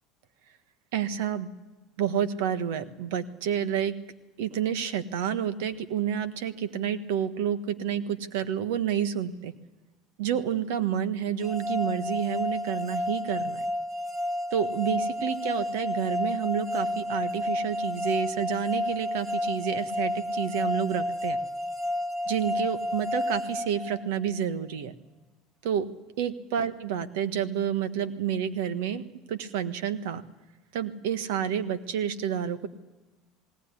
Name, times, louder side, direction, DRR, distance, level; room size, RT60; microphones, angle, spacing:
voice 1, 0.9-1.5 2.0-3.9 4.4-9.5 10.2-13.6 14.5-21.4 22.3-24.9 25.6-25.9 26.2-29.0 29.3-30.2 30.7-32.7, right 9 dB, 80° right, 12 dB, 1.4 m, -29 dB
sound 1, 11.4-24.4, left 1 dB, 25° right, 1.3 m, -31 dB
19.5 x 18.0 x 9.7 m, 1.2 s
supercardioid pair, 95°, 0 cm